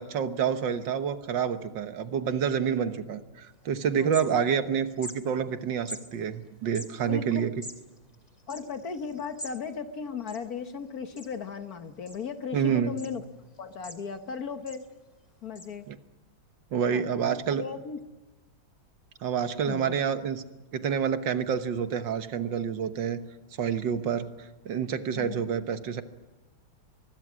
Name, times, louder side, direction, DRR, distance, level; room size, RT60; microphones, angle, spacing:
voice 1, 0.0-7.5 12.5-12.9 15.9-16.0 16.7-17.6 19.2-20.4 20.7-23.2 23.6-26.0, right 7 dB, 65° right, 10 dB, 1.8 m, -28 dB
sound 1, 3.5-3.6 3.9-4.7 5.0-5.2 5.9-6.0 6.6-9.6 9.9-10.0 10.2-10.8 11.2-11.6 12.1-12.6 13.0-13.1 13.5-14.3 14.7-14.9 15.5-15.7, left 1 dB, 20° left, 2.5 m, -43 dB
voice 2, 4.0-4.4 7.1-7.5 8.5-13.2 13.6-14.9 15.4-15.9 16.9-18.0 19.7-19.9 25.1-25.5, left 6 dB, 55° left, 9 dB, 1.5 m, -37 dB
24.5 x 21.0 x 6.2 m, 1.1 s
omnidirectional pair, 2.2 m